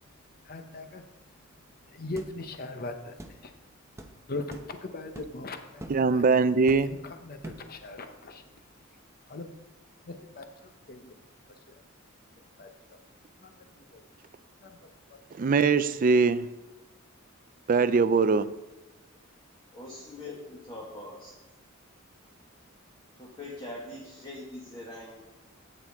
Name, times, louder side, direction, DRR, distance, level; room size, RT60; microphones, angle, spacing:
voice 1, 0.4-1.0 1.9-3.5 4.3-6.2 6.8-8.4 9.3-9.5 10.0-11.1 11.7-11.8 12.6-13.0 13.4-14.0 14.6-14.8 15.1-15.2, left 2 dB, 45° left, 7 dB, 0.9 m, -40 dB
sound 1, 2.2-2.3 3.2-3.4 4.0-4.1 4.5-4.7 5.1-5.4 5.8-6.0 6.7-7.0 7.4-7.7, right 1 dB, 15° right, 0.8 m, -43 dB
voice 2, 5.9-7.0 15.4-16.5 17.7-18.5, right 4 dB, 40° right, 15 dB, 0.4 m, -22 dB
voice 3, 19.7-21.3 23.2-25.2, left 1 dB, 25° left, -4 dB, 1.6 m, -42 dB
13.5 x 9.1 x 3.6 m, 1.0 s
head